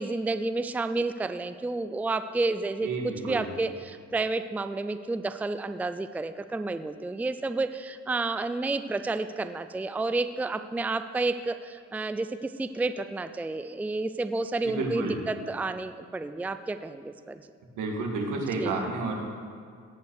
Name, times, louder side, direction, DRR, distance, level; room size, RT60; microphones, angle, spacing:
voice 1, 0.0-17.4 18.6-18.9, right 3 dB, 5° right, 10 dB, 0.4 m, -30 dB
voice 2, 2.8-3.5 14.6-15.2 17.7-19.2, right 3 dB, 80° right, 0 dB, 2.3 m, -31 dB
17.5 x 5.8 x 6.5 m, 2.2 s
cardioid pair, 90°, 30 cm